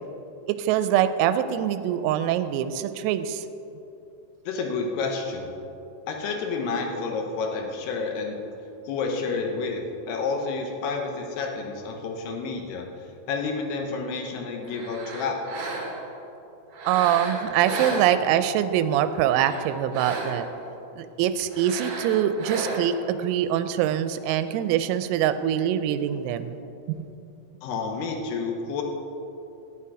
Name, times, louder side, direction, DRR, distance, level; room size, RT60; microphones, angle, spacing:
voice 1, 0.5-3.4 16.9-20.5 21.0-26.6 26.9-27.0, right 10 dB, 90° right, 11 dB, 3.3 m, -24 dB
voice 2, 4.5-5.5 6.1-8.4 8.9-12.9 13.3-15.7 27.6-28.8, left 4 dB, 80° left, 2 dB, 2.3 m, -30 dB
sound 1, 14.6-16.2 16.7-18.6 19.1-20.6 21.5-23.1, right 3 dB, 60° right, 2.8 m, -34 dB
14.0 x 8.5 x 4.8 m, 2.9 s
omnidirectional pair, 6.0 m